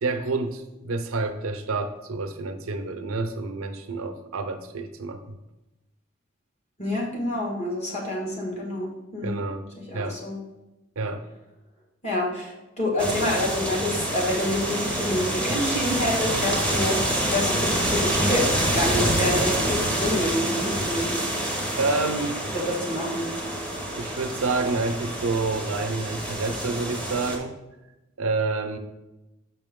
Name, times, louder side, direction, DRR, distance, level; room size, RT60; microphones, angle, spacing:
voice 1, 0.0-5.4 9.2-9.7 9.9-10.2 11.0-11.2 15.5-15.6 21.8-22.4 23.9-27.5 28.2-28.8, right 3 dB, 85° right, 7 dB, 0.6 m, -28 dB
voice 2, 6.8-9.4 9.8-10.4 12.0-21.2 22.5-23.3, left 1 dB, 35° left, -2 dB, 1.7 m, -27 dB
sound 1, 13.0-27.4, right 1 dB, 5° left, 1.0 m, -27 dB
6.0 x 5.7 x 3.6 m, 0.99 s
head